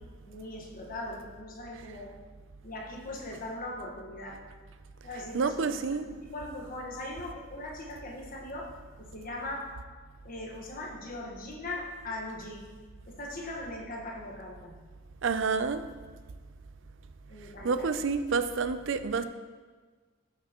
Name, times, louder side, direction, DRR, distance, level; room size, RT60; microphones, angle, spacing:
voice 1, 0.2-2.1 2.6-4.4 5.0-5.9 6.2-8.7 9.0-9.8 10.2-12.6 13.1-14.8 17.3-18.0, left 1 dB, 45° left, -1 dB, 1.4 m, -40 dB
voice 2, 5.3-6.0 15.2-15.8 17.6-19.2, right 5 dB, 65° right, 10 dB, 0.5 m, -28 dB
12.5 x 6.7 x 3.0 m, 1.4 s
head